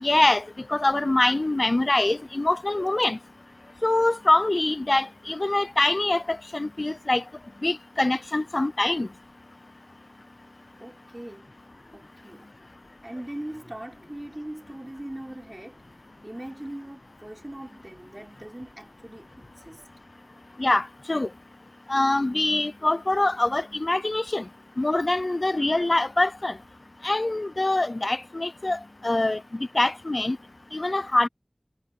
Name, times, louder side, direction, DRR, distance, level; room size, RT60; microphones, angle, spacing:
voice 1, 0.0-0.4 0.7-3.2 3.8-7.2 7.6-9.1 20.6-21.3 21.9-24.4 24.8-26.5 27.0-29.4 29.7-30.4 30.7-31.3, left 2 dB, 70° left, 0.4 m, -24 dB
voice 2, 10.8-11.5 11.9-12.5 13.0-15.8 16.2-19.8, right 1 dB, 30° right, 5.9 m, -40 dB
wide cardioid pair, 40°, 0 cm